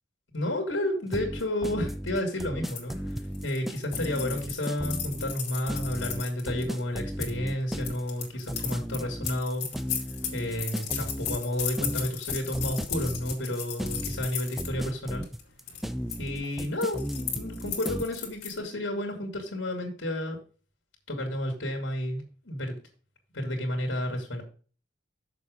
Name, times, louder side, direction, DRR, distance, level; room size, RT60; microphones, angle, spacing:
voice 1, 0.3-9.7 10.3-15.2 16.2-20.4 21.1-22.8 23.3-24.4, left 1 dB, 75° left, 2 dB, 2.8 m, -31 dB
sound 1, 1.1-18.2, equal, ahead, 0.4 m, -35 dB
sound 2, 2.7-7.3 7.8-14.7 15.1-15.4 15.7-16.2 16.4-18.6, left 8 dB, 55° left, 2.5 m, -36 dB
7.2 x 7.0 x 5.1 m, 0.38 s
head